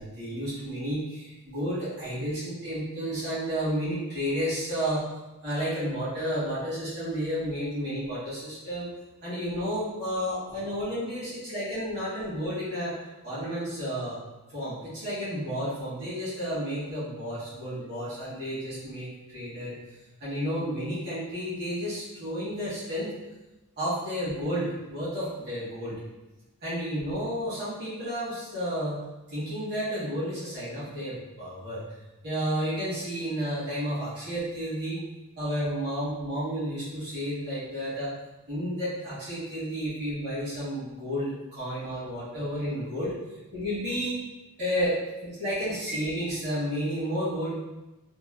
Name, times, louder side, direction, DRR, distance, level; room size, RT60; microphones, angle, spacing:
voice 1, 0.0-5.0 5.4-8.9 9.2-12.9 13.2-14.2 14.5-19.8 20.2-23.1 23.8-25.9 26.6-31.8 32.2-35.0 35.3-38.1 38.5-43.1 43.5-44.2 44.6-47.6, equal, 50° right, -12 dB, 1.2 m, -31 dB
2.9 x 2.2 x 2.3 m, 1.0 s
head